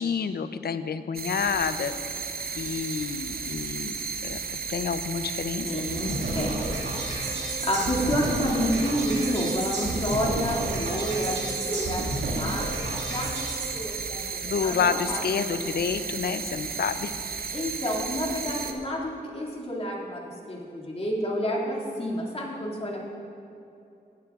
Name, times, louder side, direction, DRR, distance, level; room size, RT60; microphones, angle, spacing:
voice 1, 0.0-1.9 2.5-3.9 4.2-4.4 4.7-5.7 14.4-17.1, left 6 dB, 65° left, 11 dB, 0.5 m, -28 dB
sound 1, 1.1-18.7, right 5 dB, 60° right, 0.7 m, -34 dB
voice 2, 5.6-15.2 17.5-23.1, equal, 35° left, -3 dB, 2.3 m, -30 dB
sound 2, 5.9-13.7, right 1 dB, 90° right, 2.0 m, -32 dB
15.5 x 9.6 x 2.4 m, 2.7 s
cardioid pair, 50°, 18 cm